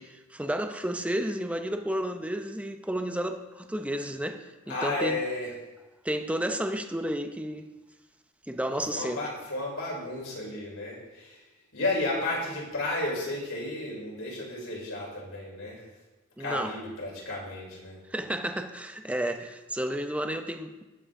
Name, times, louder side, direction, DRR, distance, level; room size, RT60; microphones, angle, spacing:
voice 1, 0.0-5.2 6.0-7.7 8.5-9.2 16.4-16.7 18.1-20.8, right 1 dB, 5° right, 6 dB, 0.7 m, -32 dB
voice 2, 4.7-5.5 8.9-11.4 11.7-15.8 16.4-18.0, left 2 dB, 75° left, -4 dB, 4.4 m, -33 dB
18.0 x 7.6 x 3.8 m, 1.1 s
head